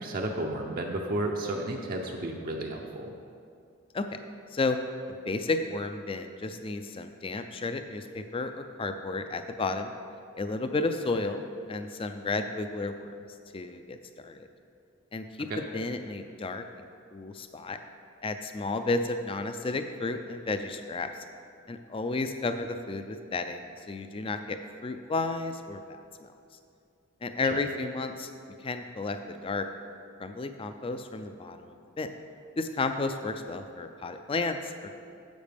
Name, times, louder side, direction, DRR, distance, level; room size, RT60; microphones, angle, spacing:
voice 1, 0.0-3.1 15.5-15.6 27.4-27.6, right 1 dB, 45° right, 1 dB, 0.6 m, -32 dB
voice 2, 5.3-9.9 10.4-13.1 13.5-14.5 15.1-16.6 17.1-17.8 18.2-21.1 21.7-26.3 27.2-28.3 28.6-29.7 30.2-32.1 32.6-34.9, left 3 dB, 25° left, 8 dB, 0.4 m, -32 dB
10.5 x 7.3 x 3.4 m, 2.4 s
head